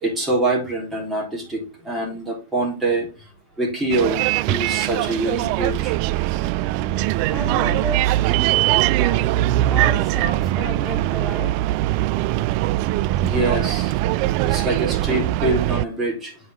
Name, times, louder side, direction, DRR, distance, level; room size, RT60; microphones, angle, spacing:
voice 1, 0.0-3.1 3.6-5.9 13.2-13.9 14.5-16.4, right 2 dB, 10° right, -1 dB, 3.6 m, -24 dB
Bus, 3.9-15.8, right 16 dB, 50° right, 0.3 m, -21 dB
voice 2, 7.3-9.3 9.7-11.6, equal, 5° left, 0 dB, 1.5 m, -32 dB
8.5 x 5.1 x 3.6 m, 0.31 s
hypercardioid pair, 130°, 0 cm